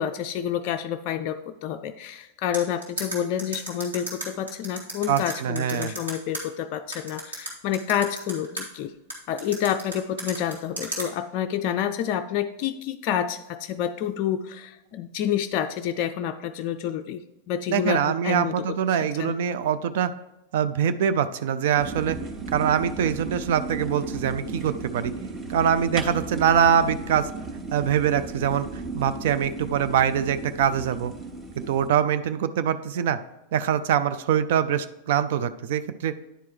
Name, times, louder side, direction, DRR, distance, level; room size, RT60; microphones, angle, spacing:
voice 1, 0.0-8.9 9.3-18.6 19.0-19.4, left 9 dB, 45° left, 6 dB, 0.3 m, -28 dB
sound 1, 2.5-6.4 6.9-8.6 9.1-11.1, right 2 dB, 75° right, 2.3 m, -33 dB
voice 2, 5.1-5.9 17.7-20.1 20.5-22.2 22.5-25.1 25.5-27.3 27.7-28.7 28.9-31.1 31.6-33.2 33.5-36.1, right 8 dB, 55° right, 12 dB, 0.4 m, -23 dB
sound 2, 21.8-31.9, right 3 dB, 25° right, 1.1 m, -35 dB
10.0 x 4.7 x 4.5 m, 0.97 s
figure-of-eight pair, 90°, 0 cm